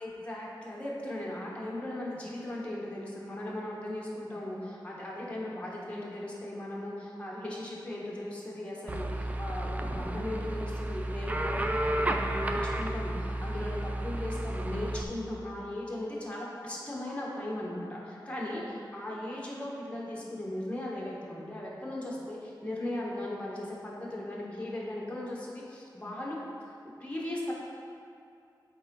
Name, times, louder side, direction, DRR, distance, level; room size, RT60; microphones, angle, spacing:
voice 1, 0.0-26.7 27.0-27.5, left 1 dB, 15° left, -5 dB, 1.2 m, -37 dB
sound 1, 8.9-15.0, right 1 dB, 20° right, 0.3 m, -32 dB
8.4 x 3.7 x 3.7 m, 2.5 s
wide cardioid pair, 100°, 8 cm